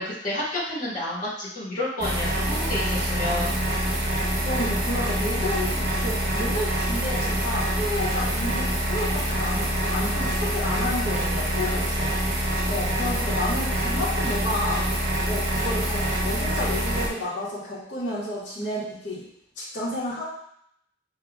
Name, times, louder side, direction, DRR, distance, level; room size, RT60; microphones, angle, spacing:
voice 1, 0.0-3.6, left 1 dB, 45° left, -8 dB, 1.5 m, -30 dB
sound 1, 2.0-17.1, right 1 dB, 65° right, 1.0 m, -25 dB
voice 2, 4.4-12.1 12.6-14.9 15.2-19.2 19.6-20.2, left 1 dB, 80° left, -8 dB, 1.5 m, -31 dB
6.8 x 2.8 x 2.4 m, 0.72 s
head